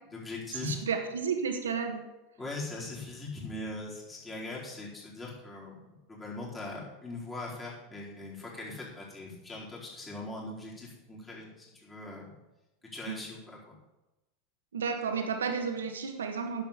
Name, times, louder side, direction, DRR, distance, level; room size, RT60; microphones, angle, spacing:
voice 1, 0.1-0.8 2.4-5.8 6.1-12.3 12.9-13.8, left 2 dB, 20° left, -5 dB, 4.6 m, -40 dB
voice 2, 0.7-2.0 13.1-13.2 14.7-16.7, right 6 dB, 85° right, 5 dB, 1.5 m, -32 dB
10.5 x 7.1 x 6.9 m, 1.0 s
hypercardioid pair, 90°, 0 cm